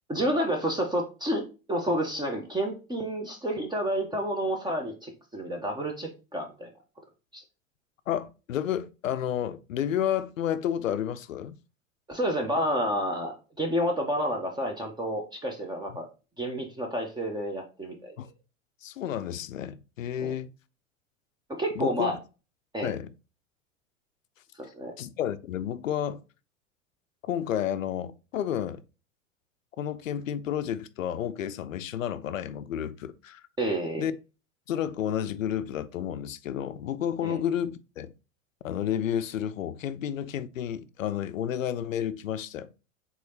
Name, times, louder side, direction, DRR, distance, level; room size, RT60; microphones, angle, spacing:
voice 1, 0.1-1.4 1.7-6.7 7.3-7.4 12.1-16.1 16.4-18.1 20.2-20.3 21.6-22.1 22.7-22.9 24.6-24.9 33.6-34.1 37.2-37.4, equal, 10° right, 0.9 m, -30 dB
voice 2, 8.1-11.5 18.2-18.3 18.8-20.5 21.8-22.1 22.8-23.1 25.0-26.2 27.2-28.8 29.8-33.4 34.0-34.2 34.7-38.1 38.6-42.7, left 10 dB, 75° left, 0.6 m, -31 dB
4.8 x 3.8 x 2.8 m
figure-of-eight pair, 90°, 40 cm